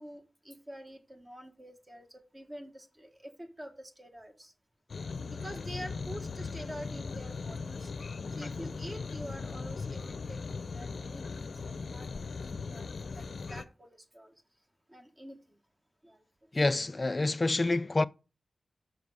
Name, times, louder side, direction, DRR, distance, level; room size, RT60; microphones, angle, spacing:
voice 1, 0.0-4.5 5.3-7.9 8.4-12.1 12.3-12.9 13.1-14.3 14.9-15.4 16.0-16.2, equal, 25° right, 1.3 m, -46 dB
sound 1, 4.9-13.6, left 4 dB, 75° left, 0.6 m, -39 dB
voice 2, 16.5-18.1, left 2 dB, 35° left, 0.3 m, -27 dB
6.8 x 6.2 x 4.7 m
wide cardioid pair, 80°, 0 cm